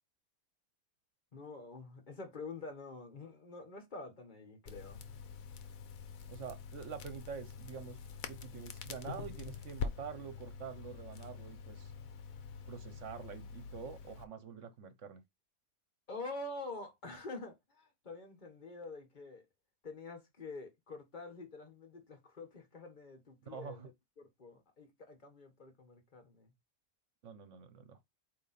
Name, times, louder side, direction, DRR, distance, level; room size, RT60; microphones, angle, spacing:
voice 1, 1.3-5.2 16.1-19.4 19.8-23.9 24.2-26.5, left 3 dB, 30° left, 1.4 m, -47 dB
Crackle, 4.7-14.2, left 6 dB, 65° left, 1.2 m, -45 dB
voice 2, 6.3-8.0 8.3-11.9 12.7-15.2 23.4-23.9 27.2-28.0, right 6 dB, 55° right, 1.1 m, -46 dB
8.4 x 2.9 x 4.2 m
omnidirectional pair, 1.6 m